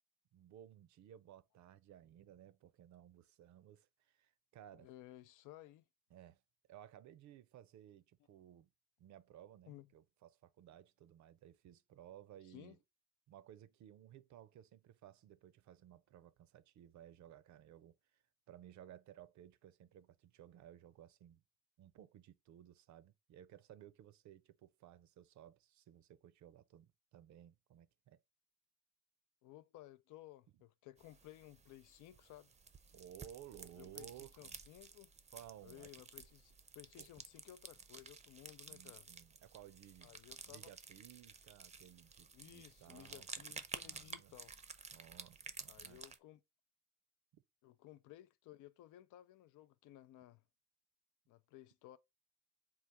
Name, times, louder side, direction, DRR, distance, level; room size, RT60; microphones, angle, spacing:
voice 1, 0.3-4.9 6.1-6.4 6.7-8.7 9.0-12.8 13.3-21.4 21.8-28.2 32.9-34.6 35.3-35.9 37.0-37.1 38.7-43.4 43.8-44.3 44.9-46.0 47.3-47.4, right 11 dB, 70° right, 0.5 m, -58 dB
voice 2, 4.7-5.8 9.7-9.9 12.4-12.8 29.4-32.5 33.8-34.1 34.4-35.1 35.6-39.1 40.0-40.7 42.3-44.5 45.7-46.4 47.6-50.4 51.3-52.0, left 14 dB, 85° left, 0.5 m, -57 dB
sound 1, 31.0-46.2, right 5 dB, 25° right, 0.5 m, -53 dB
3.8 x 2.4 x 4.4 m
cardioid pair, 90°, 30 cm